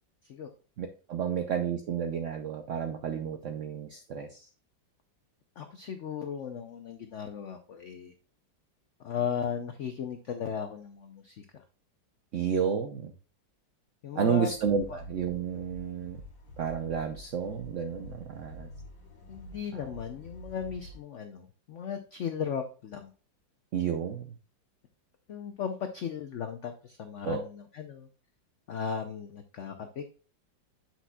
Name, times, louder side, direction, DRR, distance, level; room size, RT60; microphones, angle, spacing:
voice 1, 0.8-4.4 12.3-13.1 14.2-16.2 16.6-18.7 19.7-19.9 23.7-24.3 27.2-27.4, right 7 dB, 75° right, 6 dB, 0.7 m, -31 dB
voice 2, 5.6-8.1 9.0-11.4 14.0-14.5 14.9-15.0 19.3-23.1 25.3-28.1 28.7-30.1, left 7 dB, 80° left, 7 dB, 0.6 m, -36 dB
sound 1, 14.5-21.0, left 1 dB, 50° left, 1.6 m, -48 dB
8.1 x 5.9 x 2.2 m, 0.37 s
omnidirectional pair, 2.0 m